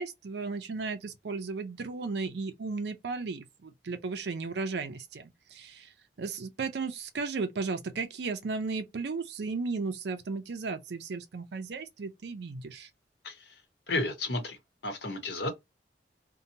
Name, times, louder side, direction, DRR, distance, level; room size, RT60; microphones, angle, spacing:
voice 1, 0.0-12.9, right 4 dB, 65° right, 0.4 m, -35 dB
voice 2, 13.2-13.6 13.9-14.6 14.8-15.5, left 2 dB, 70° left, 0.9 m, -32 dB
2.8 x 2.1 x 2.6 m
head